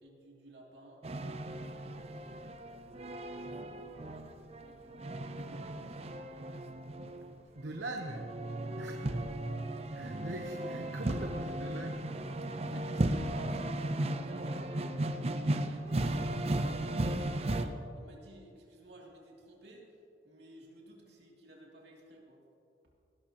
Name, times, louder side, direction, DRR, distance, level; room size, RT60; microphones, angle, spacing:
voice 1, 0.0-1.1 1.8-6.1 8.4-8.8 12.5-14.9 15.2-20.0 20.2-22.4, right 1 dB, 65° right, -2 dB, 2.7 m, -54 dB
sound 1, 1.0-17.7, right 1 dB, 35° right, 0.6 m, -36 dB
voice 2, 7.5-8.3 8.8-8.9 9.9-12.0, right 2 dB, 85° right, 2 dB, 0.9 m, -41 dB
18.0 x 12.5 x 2.9 m, 2.6 s
head